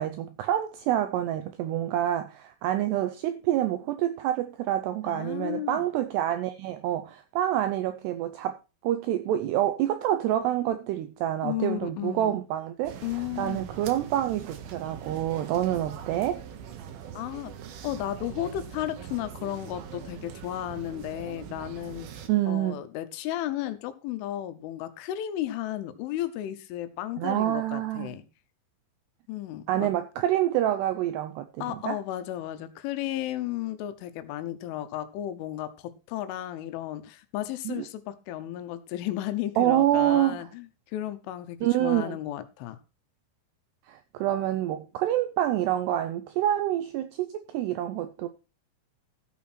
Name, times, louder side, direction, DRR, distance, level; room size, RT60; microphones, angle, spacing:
voice 1, 0.0-8.6 8.8-13.0 13.4-16.4 22.3-22.8 27.2-28.2 29.7-32.0 37.7-37.9 39.6-40.4 41.6-42.2 43.9-48.3, right 12 dB, 85° right, 2.4 m, -27 dB
voice 2, 5.1-5.9 11.4-12.4 13.0-13.7 17.1-17.5 17.8-22.1 22.5-28.2 29.3-29.9 31.6-42.8, left 13 dB, 80° left, 3.4 m, -34 dB
sound 1, 12.8-22.3, right 8 dB, 70° right, 2.4 m, -42 dB
13.5 x 7.3 x 4.3 m
omnidirectional pair, 5.6 m